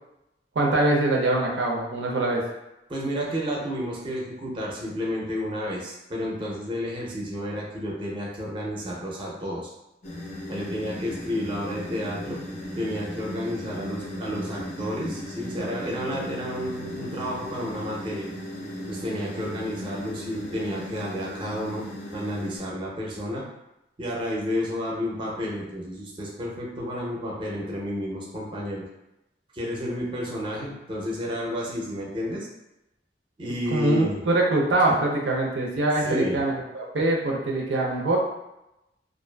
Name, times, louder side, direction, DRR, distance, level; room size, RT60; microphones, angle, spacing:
voice 1, 0.6-2.4 33.7-38.2, right 2 dB, 85° right, -1 dB, 0.5 m, -23 dB
voice 2, 2.9-9.7 10.5-12.4 12.8-18.3 18.9-23.5 24.0-28.8 29.5-32.5 33.4-34.2 36.0-36.4, equal, 30° right, -4 dB, 0.5 m, -31 dB
sound 1, 10.0-22.6, left 1 dB, 45° left, 0.5 m, -37 dB
2.4 x 2.4 x 2.2 m, 0.90 s
head